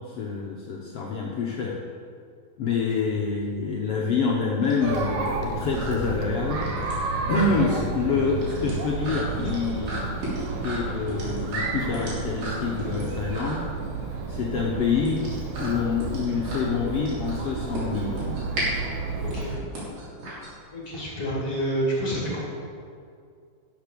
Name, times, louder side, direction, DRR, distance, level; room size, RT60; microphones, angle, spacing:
voice 1, 0.1-1.8 2.6-6.7 7.3-10.1 10.6-13.7 14.3-15.2 15.6-18.4, left 5 dB, 70° left, -2 dB, 1.4 m, -27 dB
sound 1, 3.3-21.0, right 1 dB, 80° right, 5.1 m, -36 dB
Chatter, 4.8-19.6, right 4 dB, 65° right, 2.3 m, -31 dB
voice 2, 19.2-19.5 20.7-22.4, right 1 dB, 45° left, -5 dB, 3.3 m, -29 dB
12.0 x 7.0 x 6.8 m, 2.3 s
omnidirectional pair, 3.9 m